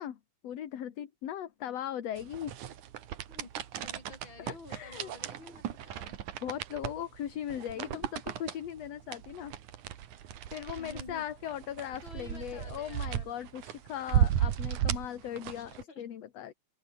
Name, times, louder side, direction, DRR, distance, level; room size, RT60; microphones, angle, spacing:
voice 1, 0.0-2.5 4.4-5.1 6.4-9.5 10.5-16.5, left 10 dB, 60° left, 2.6 m, -39 dB
sound 1, 2.2-15.8, right 10 dB, 75° right, 3.0 m, -35 dB
voice 2, 3.8-6.3 7.7-8.1 10.8-11.2 11.8-13.5 15.6-16.0, left 3 dB, 35° left, 5.7 m, -51 dB
open air
omnidirectional pair, 3.6 m